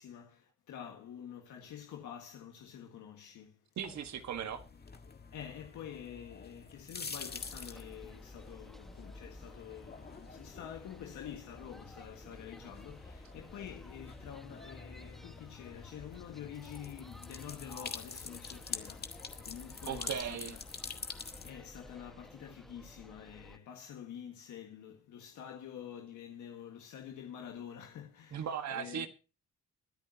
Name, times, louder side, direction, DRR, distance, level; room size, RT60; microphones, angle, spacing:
voice 1, 0.0-3.6 5.3-20.6 21.2-29.1, left 9 dB, 80° left, 1.7 m, -48 dB
sound 1, 3.8-21.5, left 5 dB, 30° left, 1.8 m, -47 dB
voice 2, 3.8-4.6 19.8-20.6 28.3-29.1, right 8 dB, 65° right, 1.5 m, -37 dB
sound 2, 7.2-23.6, left 1 dB, ahead, 1.4 m, -54 dB
22.0 x 10.5 x 2.8 m
cardioid pair, 90°, 30 cm